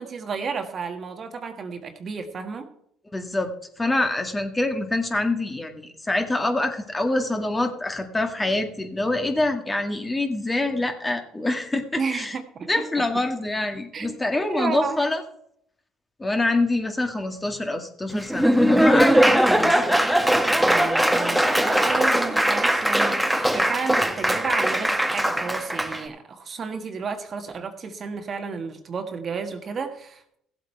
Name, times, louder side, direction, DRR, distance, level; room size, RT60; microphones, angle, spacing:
voice 1, 0.0-2.7 11.9-13.0 13.9-15.0 20.7-30.4, right 5 dB, 40° right, 6 dB, 1.6 m, -32 dB
voice 2, 3.1-12.4 12.7-15.2 16.2-19.9, left 2 dB, 15° left, 5 dB, 1.8 m, -26 dB
Laughter / Applause, 18.1-26.0, right 1 dB, ahead, 1.5 m, -20 dB
15.5 x 7.9 x 4.5 m, 0.73 s
supercardioid pair, 75°, 0 cm